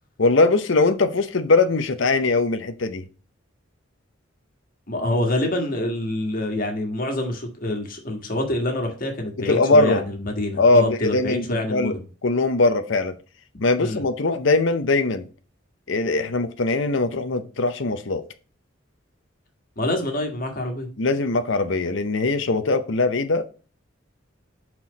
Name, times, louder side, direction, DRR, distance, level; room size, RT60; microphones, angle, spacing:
voice 1, 0.2-3.0 9.4-10.0 10.6-11.9 12.2-13.1 13.6-15.3 15.9-18.2 21.0-23.5, left 3 dB, 70° left, 0.7 m, -21 dB
voice 2, 4.9-12.0 13.8-14.0 19.8-20.9, left 1 dB, 45° left, 1.7 m, -26 dB
5.8 x 4.5 x 5.2 m
head